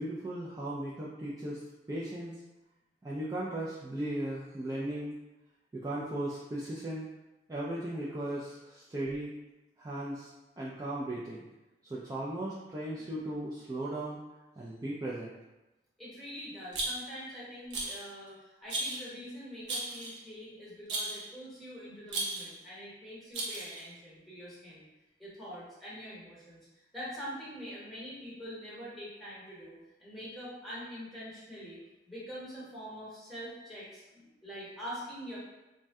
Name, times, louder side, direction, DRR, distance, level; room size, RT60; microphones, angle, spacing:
voice 1, 0.0-2.4 3.0-5.1 5.7-7.1 7.5-9.3 9.8-11.4 11.8-14.2 14.6-15.3, right 1 dB, 20° right, -7 dB, 0.3 m, -37 dB
voice 2, 16.0-24.8 25.2-31.8 32.1-35.4, equal, ahead, -9 dB, 1.0 m, -44 dB
Rattle, 16.7-17.2 17.7-18.1 18.7-19.1 19.7-20.2 20.9-21.3 22.1-22.6 23.3-23.9, right 2 dB, 70° right, 0.6 m, -35 dB
2.6 x 2.1 x 3.4 m, 1.0 s
head